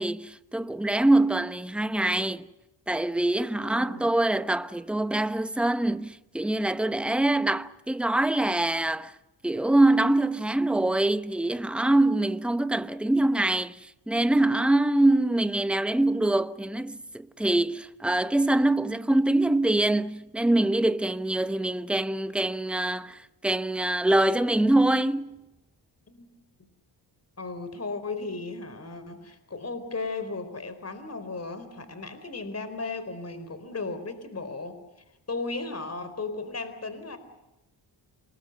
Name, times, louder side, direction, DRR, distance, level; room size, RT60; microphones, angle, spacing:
voice 1, 0.0-2.5 2.9-9.1 9.4-25.4, right 1 dB, ahead, 1.0 m, -24 dB
voice 2, 3.5-4.1 26.1-26.3 27.4-34.8 35.3-37.2, left 3 dB, 35° left, 4.5 m, -35 dB
27.5 x 21.5 x 6.8 m
cardioid pair, 70°, 45 cm